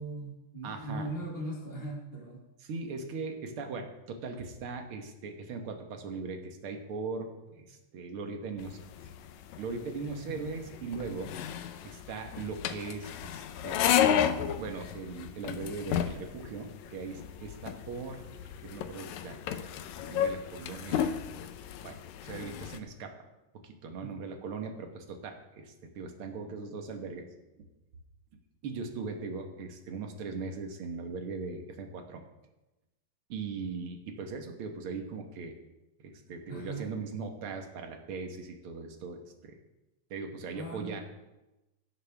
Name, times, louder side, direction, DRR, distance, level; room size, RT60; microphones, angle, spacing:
voice 1, 0.0-2.4 10.2-10.4 24.0-24.2 36.5-36.9 40.5-41.0, right 1 dB, 20° right, -5 dB, 1.8 m, -39 dB
voice 2, 0.6-1.1 2.6-8.9 9.6-11.3 11.8-14.0 14.6-18.2 18.6-19.4 20.1-21.1 21.8-23.2 23.6-27.3 27.6-27.7 28.6-32.2 33.3-35.5 36.0-39.6 40.1-41.0, right 4 dB, 55° right, 4 dB, 1.9 m, -39 dB
sound 1, 8.6-22.8, left 9 dB, 80° left, 2.0 m, -33 dB
17.0 x 10.5 x 3.5 m, 1.0 s
omnidirectional pair, 3.4 m